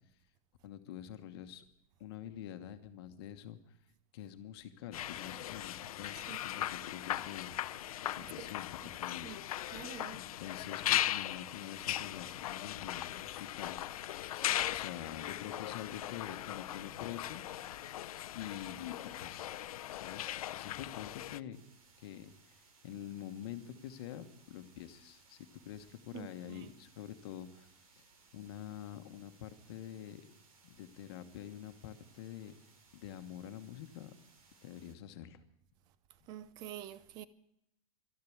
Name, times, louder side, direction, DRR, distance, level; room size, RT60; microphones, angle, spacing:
voice 1, 0.6-1.6 2.0-3.6 4.1-7.8 8.2-9.7 10.1-13.8 14.7-17.4 18.3-19.5 19.9-21.6 22.0-22.6 22.8-27.7 27.9-28.0 28.3-30.3 30.6-32.5 32.9-34.1 34.6-35.4, left 10 dB, 45° left, 1.2 m, -46 dB
sound 1, 4.9-21.4, left 13 dB, 90° left, 0.6 m, -38 dB
voice 2, 8.2-8.5 9.2-9.4 9.7-10.2 26.1-26.7 36.3-37.2, right 11 dB, 20° right, 0.5 m, -47 dB
sound 2, 21.5-35.0, right 4 dB, 80° right, 3.1 m, -65 dB
12.5 x 10.5 x 9.3 m
supercardioid pair, 175°, 18 cm